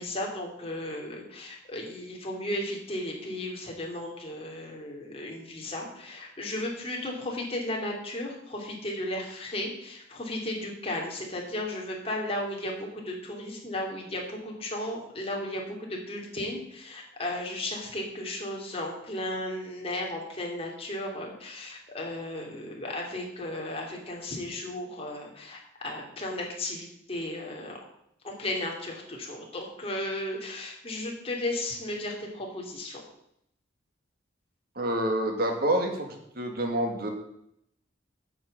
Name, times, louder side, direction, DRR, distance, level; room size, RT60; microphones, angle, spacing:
voice 1, 0.0-27.8 28.2-33.0, left 1 dB, 35° left, -1 dB, 2.8 m, -35 dB
voice 2, 34.8-36.1 36.4-37.1, right 1 dB, 55° right, 3 dB, 2.1 m, -27 dB
9.3 x 6.1 x 8.2 m, 0.75 s
head